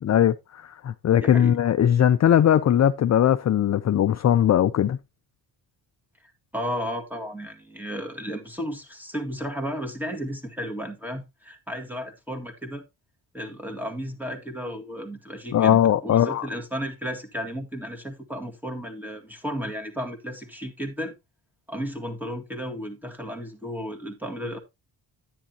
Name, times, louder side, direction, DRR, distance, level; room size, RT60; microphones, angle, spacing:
voice 1, 0.0-5.0 15.5-16.5, left 10 dB, 40° left, 0.4 m, -20 dB
voice 2, 1.2-1.6 6.5-12.8 13.3-21.1 21.7-24.6, equal, 5° right, 1.9 m, -33 dB
10.0 x 9.2 x 2.8 m
cardioid pair, 95°, 46 cm